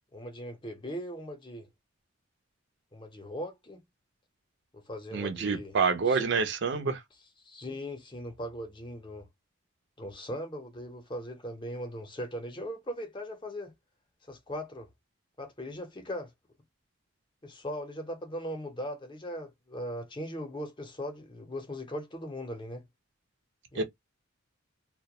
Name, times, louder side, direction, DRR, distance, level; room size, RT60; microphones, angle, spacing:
voice 1, 0.1-1.7 2.9-3.8 4.7-5.8 6.1-6.3 7.4-9.3 10.0-13.7 14.3-14.9 15.4-16.3 17.4-22.8 23.7-23.8, equal, 25° left, 0.5 m, -39 dB
voice 2, 5.1-7.0 23.8-23.9, right 5 dB, 60° right, 0.5 m, -27 dB
2.2 x 2.0 x 2.8 m
head